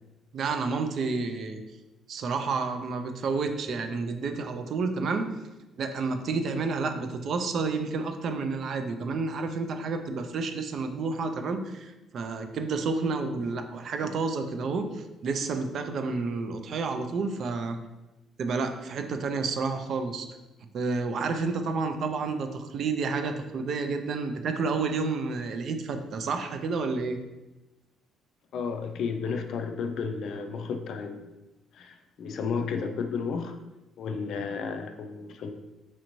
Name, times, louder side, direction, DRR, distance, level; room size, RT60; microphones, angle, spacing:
voice 1, 0.3-1.6 2.1-5.3 5.8-17.8 18.4-20.3 20.7-27.2, right 4 dB, 50° right, 7 dB, 0.4 m, -30 dB
voice 2, 28.5-31.3 31.7-33.6 34.0-35.5, left 5 dB, 60° left, 6 dB, 0.4 m, -32 dB
4.3 x 2.6 x 3.0 m, 1.0 s
cardioid pair, 135°, 0 cm